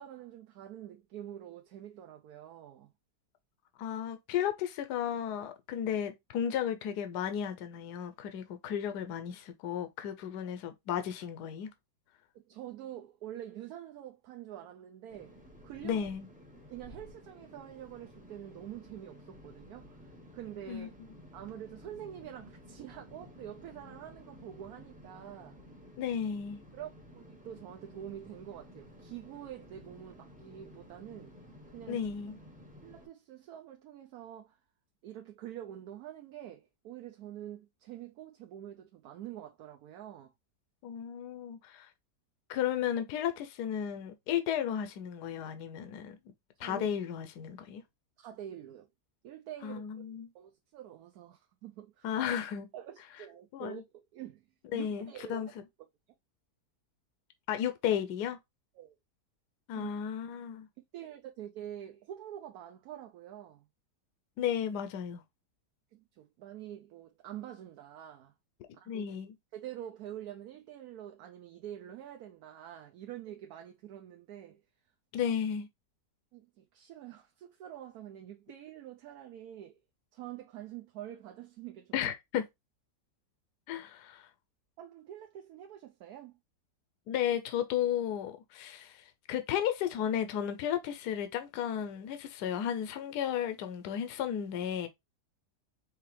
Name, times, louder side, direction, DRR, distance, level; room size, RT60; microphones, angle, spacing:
voice 1, 0.0-2.9 12.3-16.1 16.7-20.0 20.3-20.9 21.3-25.6 26.7-31.4 31.7-32.1 32.8-34.6 35.0-40.3 46.6-46.9 48.2-48.9 49.2-52.1 52.7-54.5 54.7-55.5 58.7-59.0 59.8-59.9 60.9-63.6 65.9-68.3 68.8-69.2 69.5-74.6 76.3-79.8 80.1-82.1 84.8-86.4, right 11 dB, 70° right, 1.0 m, -46 dB
voice 2, 3.8-11.7 15.8-16.3 20.7-20.9 26.0-26.6 31.9-32.4 40.8-41.9 42.5-46.2 46.6-47.8 49.6-50.3 52.0-52.7 53.5-53.8 54.7-55.5 57.5-58.4 59.7-60.7 64.4-65.2 68.7-69.3 75.1-75.7 81.9-82.4 83.7-84.3 87.1-94.9, left 9 dB, 80° left, 1.2 m, -34 dB
sound 1, 15.1-33.1, equal, 5° right, 0.7 m, -53 dB
4.8 x 3.1 x 3.1 m
omnidirectional pair, 1.8 m